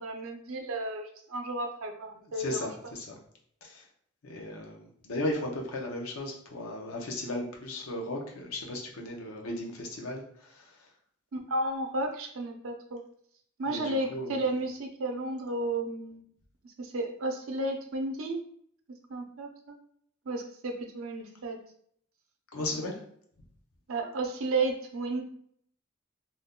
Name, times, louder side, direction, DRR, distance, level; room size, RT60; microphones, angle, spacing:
voice 1, 0.0-2.7 11.3-13.0 13.6-16.2 16.6-18.4 19.1-19.8 20.3-21.6 23.9-25.2, right 2 dB, 75° right, 3 dB, 0.6 m, -33 dB
voice 2, 2.2-3.2 3.6-3.8 4.2-10.9 13.7-14.4 22.5-23.0, left 1 dB, 85° left, 1 dB, 0.7 m, -36 dB
2.6 x 2.2 x 3.6 m, 0.64 s
head